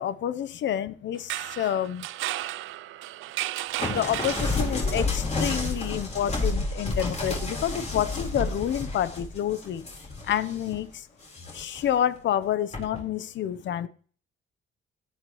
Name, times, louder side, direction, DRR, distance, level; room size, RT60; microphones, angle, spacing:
voice 1, 0.0-2.1 3.9-9.9 10.3-11.1 11.5-13.9, left 10 dB, 70° left, 15 dB, 0.9 m, -28 dB
sound 1, 1.2-5.0, right 16 dB, 80° right, 0.4 m, -34 dB
sound 2, 3.8-10.8 11.2-11.9 12.7-13.0, left 3 dB, 35° left, 4.3 m, -30 dB
17.0 x 9.1 x 3.2 m, 0.43 s
cardioid pair, 90°, 20 cm